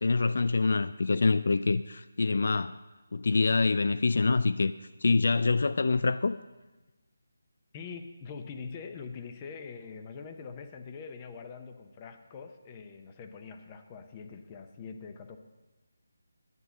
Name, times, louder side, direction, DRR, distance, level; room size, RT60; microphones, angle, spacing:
voice 1, 0.0-2.8 3.1-4.7 5.0-6.4, left 3 dB, 55° left, 0.3 m, -25 dB
voice 2, 7.7-15.4, left 5 dB, 15° left, 0.7 m, -43 dB
11.0 x 7.8 x 7.0 m
figure-of-eight pair, 175°, 0 cm